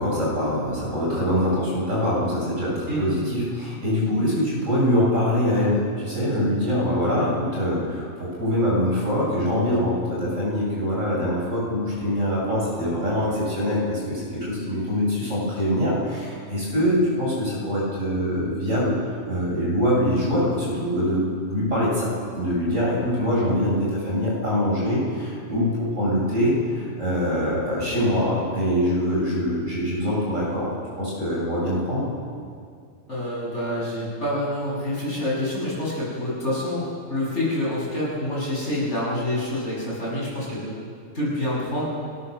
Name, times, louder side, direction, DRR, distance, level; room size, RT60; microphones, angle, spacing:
voice 1, 0.0-21.2 21.5-32.1, equal, 80° right, -5 dB, 8.2 m, -24 dB
voice 2, 33.1-40.7 41.1-41.9, left 1 dB, 65° left, -6 dB, 7.3 m, -27 dB
29.5 x 13.0 x 6.8 m, 2.2 s
omnidirectional pair, 1.3 m